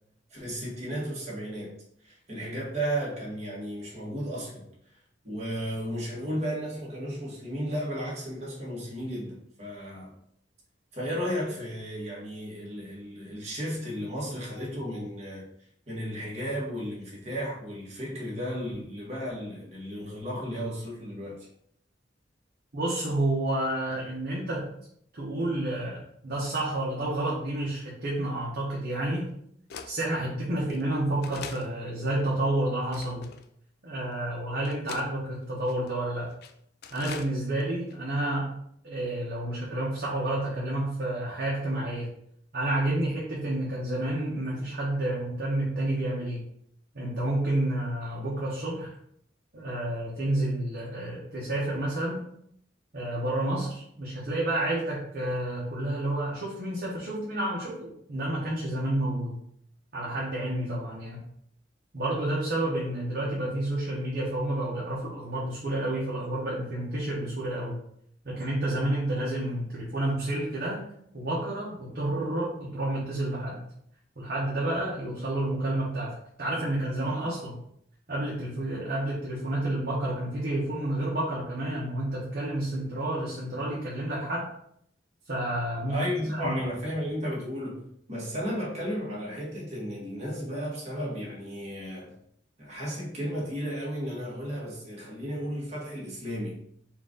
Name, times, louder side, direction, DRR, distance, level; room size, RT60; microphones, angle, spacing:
voice 1, 0.3-1.8 2.0-4.7 5.2-10.1 10.9-15.5 15.9-21.5 85.9-87.8 88.1-92.2 92.6-96.6, equal, 40° right, -5 dB, 1.6 m, -34 dB
voice 2, 22.7-24.7 25.1-29.3 29.8-33.2 33.8-36.3 36.9-38.6 38.8-42.1 42.5-46.4 46.9-48.9 49.5-52.2 52.9-59.4 59.9-61.2 61.9-67.8 68.2-70.8 71.1-73.6 74.2-77.6 78.1-84.5 85.3-86.0 86.3-86.5, right 1 dB, 55° right, -6 dB, 1.0 m, -30 dB
sound 1, 28.1-28.2 28.9-29.0 29.7-29.9 30.7-30.8 31.2-31.7 32.3-32.4 32.9-33.4 34.1-34.2 34.6-35.1 35.7-35.9 36.3-36.5 36.8-37.3 37.6-37.7 37.9-38.0, left 6 dB, 60° left, 0.4 m, -42 dB
4.5 x 2.6 x 3.8 m, 0.70 s
head